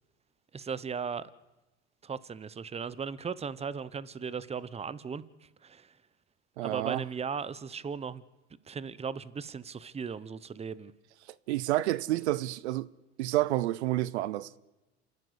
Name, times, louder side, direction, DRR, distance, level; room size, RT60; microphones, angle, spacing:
voice 1, 0.5-1.3 2.0-6.0 6.6-8.2 8.7-10.9, right 6 dB, 20° right, 0.9 m, -37 dB
voice 2, 6.6-7.0 11.5-12.9 13.2-14.6, right 15 dB, 85° right, 0.7 m, -29 dB
27.5 x 12.0 x 8.2 m
hypercardioid pair, 90°, 33 cm